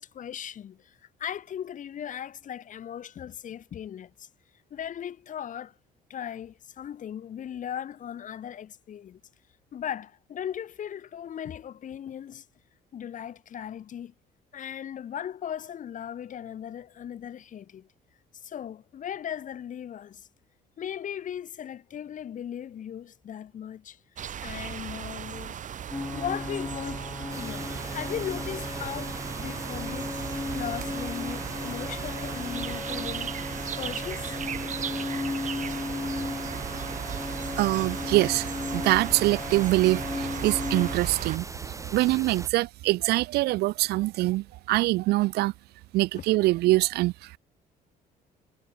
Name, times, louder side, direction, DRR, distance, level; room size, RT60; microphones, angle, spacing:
voice 1, 0.0-4.3 4.7-5.7 6.1-9.2 9.7-12.5 12.9-14.1 14.5-17.9 18.4-20.3 20.8-24.0 24.4-25.6 26.1-30.1 30.5-33.4 33.8-34.4 46.1-46.2, left 9 dB, 50° left, 2.3 m, -37 dB
sound 1, 24.2-41.4, right 9 dB, 50° right, 2.6 m, -37 dB
sound 2, 25.9-41.0, left 3 dB, 15° left, 2.8 m, -36 dB
sound 3, 27.3-42.5, right 3 dB, 20° right, 3.1 m, -40 dB
voice 2, 37.6-45.5 45.9-47.4, right 19 dB, 75° right, 0.4 m, -24 dB
cardioid pair, 110°, 17 cm